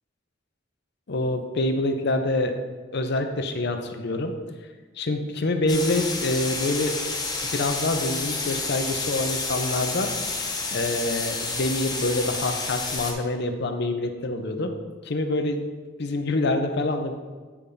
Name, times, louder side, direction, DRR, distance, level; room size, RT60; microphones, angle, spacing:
voice 1, 1.1-2.5 2.9-4.3 5.0-6.9 7.5-10.1 10.7-14.7 15.0-15.6 16.0-17.1, left 2 dB, 60° left, 6 dB, 0.7 m, -26 dB
sound 1, 5.7-13.1, left 3 dB, 20° left, 0.9 m, -30 dB
8.5 x 3.5 x 5.4 m, 1.4 s
head